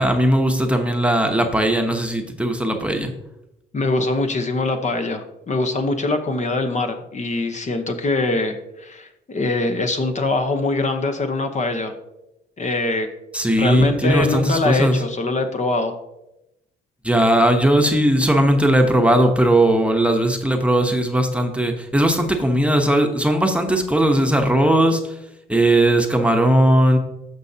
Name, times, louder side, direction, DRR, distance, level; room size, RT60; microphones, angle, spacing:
voice 1, 0.0-3.1 13.3-15.0 17.0-25.2 25.5-27.0, right 1 dB, 5° right, 3 dB, 1.0 m, -18 dB
voice 2, 3.7-11.9 12.6-13.1 13.6-15.9, left 2 dB, 35° left, 6 dB, 1.0 m, -23 dB
14.0 x 5.4 x 2.8 m, 0.90 s
cardioid pair, 90°, 20 cm